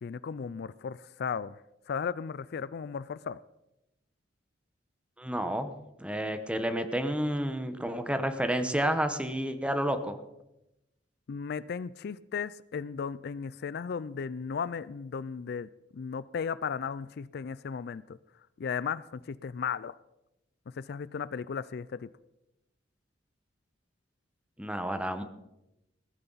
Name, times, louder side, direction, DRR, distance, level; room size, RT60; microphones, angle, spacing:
voice 1, 0.0-1.6 1.9-3.4 11.3-18.2 18.6-20.0 20.7-22.1, left 6 dB, 60° left, 0.4 m, -35 dB
voice 2, 5.2-5.7 6.0-10.2 24.6-25.2, right 1 dB, 5° right, 1.0 m, -30 dB
16.0 x 14.5 x 4.0 m
head